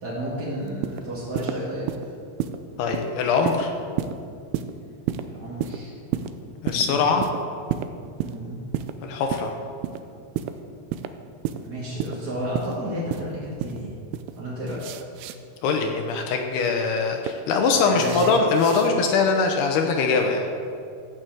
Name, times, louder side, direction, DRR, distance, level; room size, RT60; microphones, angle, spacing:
voice 1, 0.0-2.1 5.2-5.9 6.6-7.1 8.2-8.6 11.6-14.0 14.3-14.8 17.8-18.4, equal, 35° right, -7 dB, 1.6 m, -32 dB
sound 1, 0.7-1.0 1.3-1.6 1.9-2.1 2.4-2.6 2.9-3.1 3.4-3.6 4.0-4.2 4.5-4.7 5.1-5.2 5.6-5.8 6.1-6.3 6.7-6.8 7.2-7.4 7.7-7.9 8.2-8.4 8.7-8.9 9.3-9.5 9.8-10.0 10.3-10.5 10.9-11.1 11.4-11.6 12.0-12.2 12.5-12.7 13.1-13.3 13.6-13.8 14.1-14.3 14.7-15.4 16.8-17.3 18.0-18.9, right 11 dB, 85° right, 2.3 m, -29 dB
voice 2, 2.8-3.7 6.6-7.3 9.0-9.5 15.6-20.5, left 4 dB, 75° left, 3 dB, 2.7 m, -22 dB
14.5 x 6.2 x 7.9 m, 2.4 s
omnidirectional pair, 5.1 m